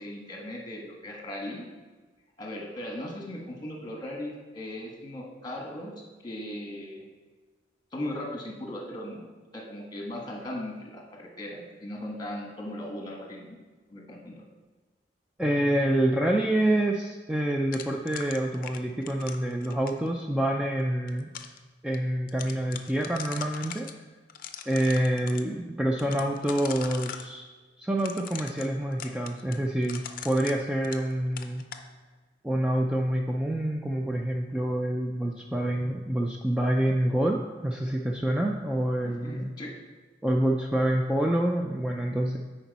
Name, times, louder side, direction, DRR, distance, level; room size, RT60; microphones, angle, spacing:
voice 1, 0.0-1.7 2.4-5.9 6.2-7.0 7.9-9.3 9.5-13.6 13.9-14.4 39.0-39.7, left 1 dB, 25° left, -1 dB, 1.4 m, -38 dB
voice 2, 15.4-21.3 21.8-23.9 24.7-27.5 27.8-31.6 32.4-39.5 40.2-42.4, right 1 dB, 5° right, 0 dB, 0.4 m, -27 dB
sound 1, 17.7-20.1 20.8-21.6 21.9-22.0 22.3-23.9 24.3-25.4 26.0-27.3 28.0-31.1 31.4-31.9, left 8 dB, 50° left, 0.5 m, -41 dB
10.0 x 4.5 x 4.1 m, 1.3 s
head